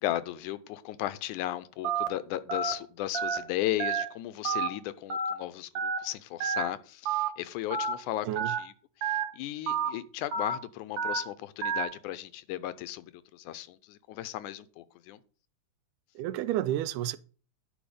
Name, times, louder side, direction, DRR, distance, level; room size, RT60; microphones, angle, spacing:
voice 1, 0.0-8.7 9.0-15.2, left 14 dB, 85° left, 2.1 m, -36 dB
Telephone, 1.8-2.1 2.5-2.7 3.1-3.4 3.8-4.0 4.4-4.7 5.1-5.3 5.8-6.0 6.4-6.6 7.1-7.3 7.7-7.9 8.4-8.6 9.0-9.2 9.7-9.9 10.3-10.5 11.0-11.2 11.6-11.8, right 5 dB, 60° right, 1.8 m, -29 dB
voice 2, 16.2-17.2, right 13 dB, 85° right, 2.1 m, -30 dB
10.0 x 5.5 x 5.1 m
omnidirectional pair, 3.5 m